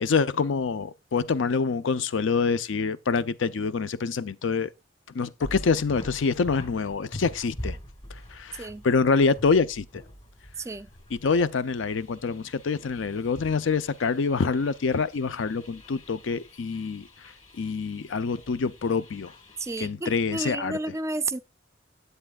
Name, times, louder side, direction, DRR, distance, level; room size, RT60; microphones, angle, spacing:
voice 1, 0.0-4.7 5.1-7.8 8.3-10.0 11.1-17.1 17.6-19.3 19.8-20.8, left 4 dB, 80° left, 0.5 m, -26 dB
sound 1, 5.4-19.9, equal, 35° left, 2.2 m, -45 dB
voice 2, 10.6-10.9 19.6-21.4, right 2 dB, 15° right, 0.3 m, -31 dB
9.9 x 8.1 x 2.4 m
head